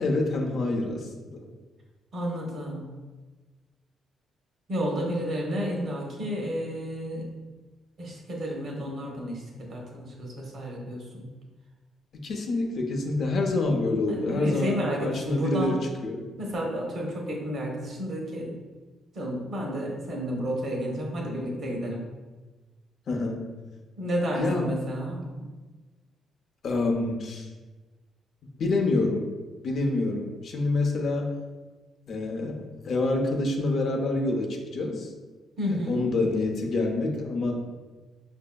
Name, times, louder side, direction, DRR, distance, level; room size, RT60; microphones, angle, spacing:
voice 1, 0.0-1.4 12.1-16.3 23.1-23.4 24.4-24.8 26.6-27.5 28.6-29.3 29.6-31.3 32.1-35.1 35.7-37.6, left 2 dB, 60° left, 2 dB, 0.6 m, -27 dB
voice 2, 2.1-2.9 4.7-7.3 8.0-11.3 13.5-13.8 14.1-15.8 16.4-18.6 19.1-22.0 24.0-25.5 35.6-36.1, equal, 55° right, -1 dB, 0.9 m, -31 dB
5.2 x 2.6 x 2.2 m, 1.3 s
cardioid pair, 90°, 0 cm